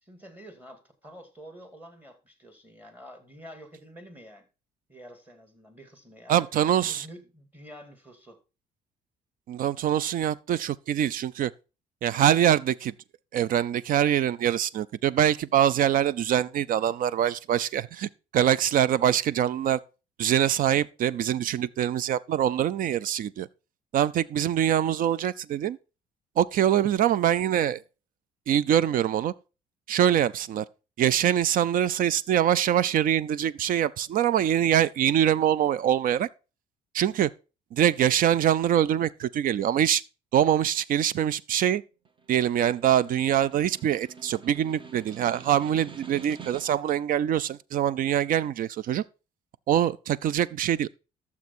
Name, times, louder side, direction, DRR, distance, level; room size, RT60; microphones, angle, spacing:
voice 1, 0.0-4.5 4.9-6.5 6.8-8.4, equal, 10° right, 2.5 m, -48 dB
voice 2, 6.3-7.1 9.5-11.5 12.0-12.9 13.3-19.8 20.2-23.5 23.9-25.8 26.4-27.8 28.5-29.3 29.9-30.6 31.0-36.3 36.9-37.3 37.7-40.0 40.3-41.8 42.3-49.0 49.7-50.9, right 10 dB, 55° right, 0.5 m, -24 dB
Snare drum, 42.1-47.0, right 6 dB, 30° right, 1.0 m, -47 dB
12.0 x 7.1 x 4.3 m
cardioid pair, 110°, 17 cm